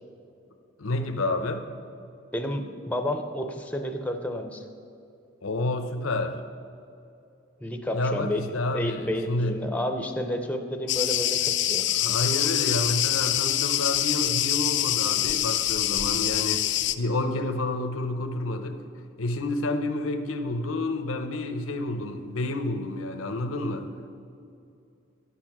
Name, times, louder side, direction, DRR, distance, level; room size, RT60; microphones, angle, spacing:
voice 1, 0.8-1.7 5.4-6.4 7.9-9.6 12.0-16.7 17.0-18.8 19.2-23.9, left 2 dB, 80° left, 7 dB, 0.8 m, -29 dB
voice 2, 2.3-4.6 7.6-11.9, left 1 dB, 5° left, 5 dB, 0.6 m, -31 dB
Cricket, 10.9-16.9, left 13 dB, 55° left, 0.4 m, -25 dB
11.5 x 8.6 x 6.0 m, 2.6 s
head